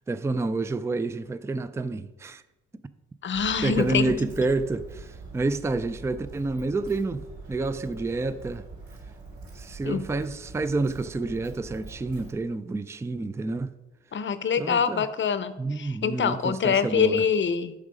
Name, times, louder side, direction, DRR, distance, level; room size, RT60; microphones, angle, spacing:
voice 1, 0.1-2.4 3.6-8.6 9.6-13.7 14.6-15.0 15.6-17.3, right 3 dB, 10° right, 0.4 m, -29 dB
voice 2, 3.2-4.2 9.8-10.0 14.1-17.7, left 7 dB, 40° left, 0.7 m, -25 dB
Walk footsteps, 3.3-12.3, right 3 dB, 70° right, 3.6 m, -44 dB
8.5 x 6.4 x 5.1 m
cardioid pair, 90°, 30 cm